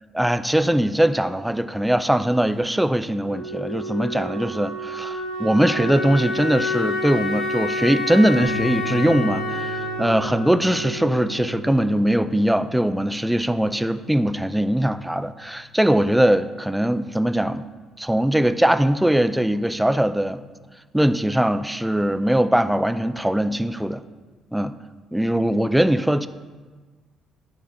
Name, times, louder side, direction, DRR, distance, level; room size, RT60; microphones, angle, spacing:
voice 1, 0.1-17.7 18.0-20.4 20.9-24.0 24.5-24.7 25.1-26.3, right 1 dB, 5° right, 12 dB, 0.4 m, -21 dB
Wind instrument woodwind instrument, 3.2-11.9, left 1 dB, 85° left, 2.8 m, -29 dB
sound 1, 8.4-16.9, left 5 dB, 70° left, 1.0 m, -39 dB
9.3 x 4.2 x 5.6 m, 1.4 s
supercardioid pair, 75°, 0 cm